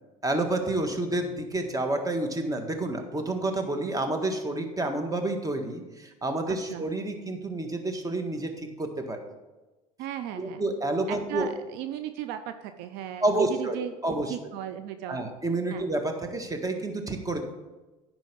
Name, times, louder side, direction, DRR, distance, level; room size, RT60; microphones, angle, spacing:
voice 1, 0.2-9.2 10.4-11.5 13.2-14.3 15.1-17.4, right 2 dB, 20° right, 5 dB, 1.6 m, -29 dB
voice 2, 6.5-6.8 10.0-10.7 11.1-13.9 14.3-15.3 15.7-15.9, right 11 dB, 70° right, 9 dB, 0.6 m, -36 dB
10.5 x 4.7 x 6.8 m, 1.1 s
hypercardioid pair, 75°, 18 cm